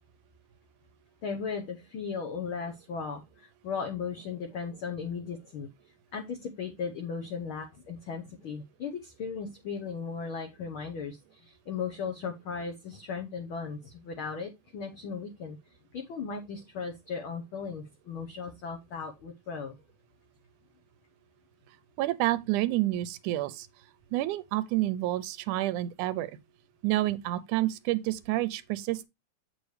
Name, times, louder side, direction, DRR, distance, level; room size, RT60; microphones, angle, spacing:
voice 1, 1.2-5.7 6.1-15.6 15.9-19.8, left 5 dB, 65° left, 1.3 m, -37 dB
voice 2, 22.0-23.7 24.1-26.3 26.8-29.1, right 16 dB, 90° right, 2.1 m, -29 dB
8.1 x 6.7 x 3.2 m
omnidirectional pair, 3.4 m